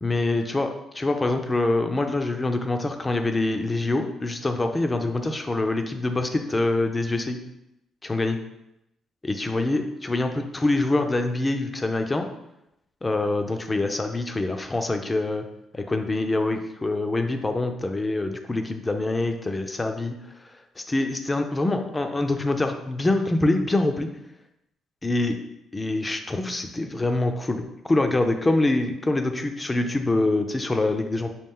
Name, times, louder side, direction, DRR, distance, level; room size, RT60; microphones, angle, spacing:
voice 1, 0.0-0.7 0.9-7.4 8.0-8.4 9.2-12.3 13.0-15.5 15.7-20.2 20.8-24.1 25.0-25.4 25.7-31.3, left 2 dB, 20° left, 5 dB, 0.5 m, -25 dB
5.4 x 2.4 x 3.7 m, 0.85 s
cardioid pair, 90°, 0 cm